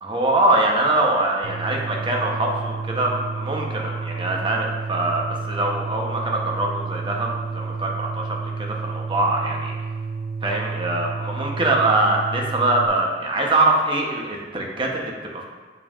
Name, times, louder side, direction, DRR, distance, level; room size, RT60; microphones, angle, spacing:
voice 1, 0.0-9.7 10.4-15.4, right 2 dB, 30° right, 0 dB, 0.8 m, -23 dB
sound 1, 1.4-12.9, right 4 dB, 50° right, 0.3 m, -31 dB
7.7 x 5.3 x 2.4 m, 1.5 s
head